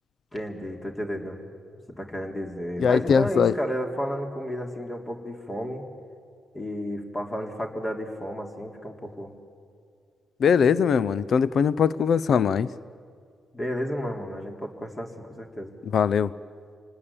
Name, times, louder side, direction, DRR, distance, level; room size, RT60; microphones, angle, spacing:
voice 1, 0.3-1.5 2.0-5.8 6.5-9.3 13.5-15.7, equal, 25° left, 2 dB, 3.5 m, -32 dB
voice 2, 2.8-3.5 10.4-12.7 15.9-16.3, left 6 dB, 60° left, 19 dB, 0.6 m, -21 dB
26.5 x 19.5 x 8.5 m, 2.3 s
hypercardioid pair, 40°, 0 cm